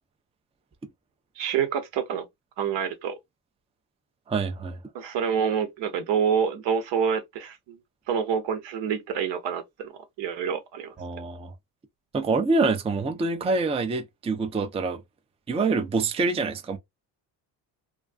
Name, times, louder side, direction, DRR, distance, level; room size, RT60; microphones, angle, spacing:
voice 1, 1.4-2.3 2.6-3.1 4.9-7.8 8.1-9.9 10.2-10.9, right 7 dB, 70° right, 0.9 m, -27 dB
voice 2, 4.3-4.8 11.0-11.5 12.1-15.0 15.5-16.8, right 3 dB, 15° right, 0.4 m, -26 dB
2.3 x 2.3 x 2.4 m
supercardioid pair, 65°, 45 cm